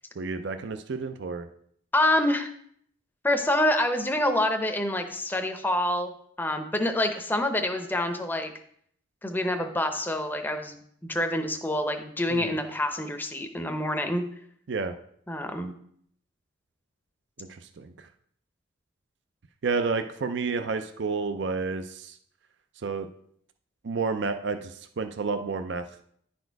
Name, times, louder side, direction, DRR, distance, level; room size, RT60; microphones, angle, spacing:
voice 1, 0.2-1.5 12.3-12.6 14.7-14.9 17.4-18.1 19.6-22.2 22.8-23.1 23.8-26.0, right 4 dB, 60° right, 8 dB, 0.5 m, -30 dB
voice 2, 1.9-2.5 3.2-6.1 6.4-8.5 9.2-14.2 15.3-15.7, left 1 dB, 10° left, 6 dB, 0.6 m, -27 dB
10.5 x 4.3 x 4.6 m, 0.66 s
head